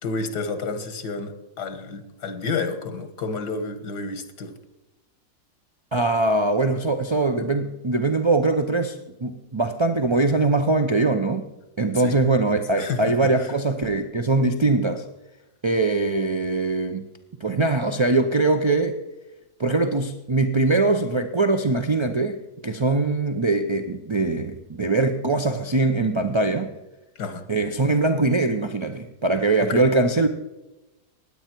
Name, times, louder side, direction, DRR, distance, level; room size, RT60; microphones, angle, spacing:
voice 1, 0.0-4.5 11.9-12.2 12.8-13.5 27.2-27.5 29.6-29.9, left 4 dB, 85° left, 2.1 m, -30 dB
voice 2, 5.9-11.5 11.8-15.0 15.6-17.1 17.4-19.0 19.6-26.7 27.5-30.3, right 3 dB, 40° right, 0.4 m, -22 dB
16.5 x 10.5 x 4.5 m
omnidirectional pair, 1.7 m